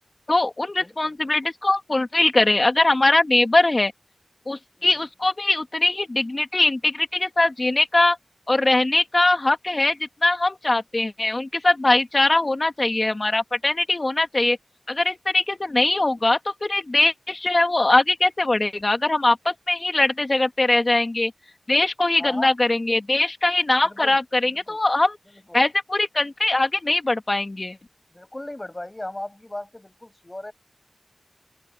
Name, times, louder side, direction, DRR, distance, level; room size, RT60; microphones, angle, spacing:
voice 1, 0.3-3.9 4.5-8.2 8.5-14.6 14.9-21.3 21.7-25.2 25.5-27.8, left 2 dB, 55° left, 2.1 m, -21 dB
voice 2, 0.8-1.3 4.8-4.9 16.0-16.1 22.2-22.5 23.8-24.2 24.7-24.8 25.3-25.6 28.1-30.5, left 1 dB, 35° left, 7.0 m, -37 dB
open air
wide cardioid pair, 45°, 0 cm